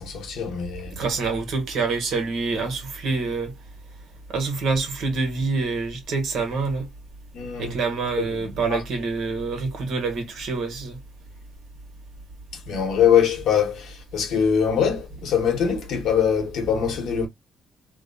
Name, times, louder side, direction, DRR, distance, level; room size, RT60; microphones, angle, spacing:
voice 1, 0.0-1.0 7.3-7.8 8.2-8.8 12.7-17.3, left 8 dB, 75° left, 1.0 m, -23 dB
voice 2, 0.9-3.5 4.3-6.9 7.6-11.0, right 4 dB, 75° right, 1.2 m, -26 dB
2.7 x 2.1 x 2.6 m
cardioid pair, 90°, 0 cm